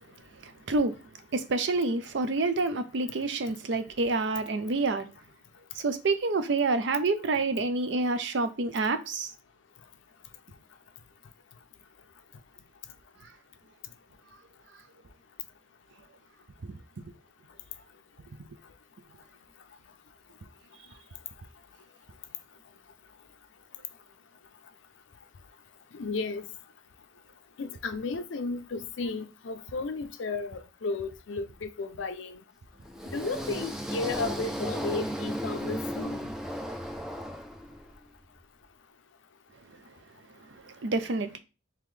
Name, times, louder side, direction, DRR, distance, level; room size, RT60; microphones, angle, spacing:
voice 1, 0.4-1.0 1.3-5.1 5.8-9.3 16.6-16.7 40.8-41.4, right 3 dB, 60° right, 0.5 m, -28 dB
voice 2, 25.9-26.4 27.6-32.4 33.1-36.3, left 3 dB, 70° left, 0.4 m, -34 dB
sound 1, 32.8-38.0, equal, 5° right, 0.4 m, -35 dB
3.7 x 2.9 x 3.2 m
head